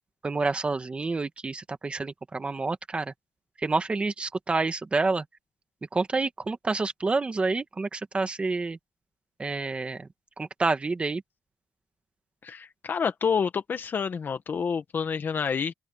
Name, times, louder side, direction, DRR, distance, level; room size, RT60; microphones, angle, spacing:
voice 1, 0.2-3.1 3.6-5.2 5.9-8.8 9.4-10.1 10.4-11.2, right 3 dB, 20° right, 1.5 m, -28 dB
voice 2, 12.4-15.7, left 6 dB, 35° left, 1.4 m, -28 dB
open air
cardioid pair, 165°, 6 cm